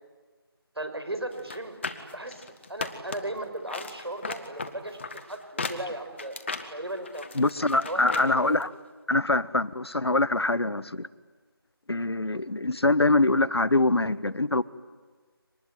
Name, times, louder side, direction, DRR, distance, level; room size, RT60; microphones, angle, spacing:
voice 1, 0.7-1.8 2.1-6.4 6.7-7.3 7.9-8.6 12.3-12.4, right 1 dB, 85° right, 8 dB, 5.9 m, -36 dB
sound 1, 1.4-3.4 3.7-8.3 8.6-8.7, left 4 dB, 30° left, 1.7 m, -36 dB
voice 2, 7.3-8.7 9.1-11.1 11.9-14.6, left 2 dB, 85° left, 17 dB, 1.2 m, -24 dB
25.5 x 20.5 x 9.4 m, 1.4 s
figure-of-eight pair, 170°, 13 cm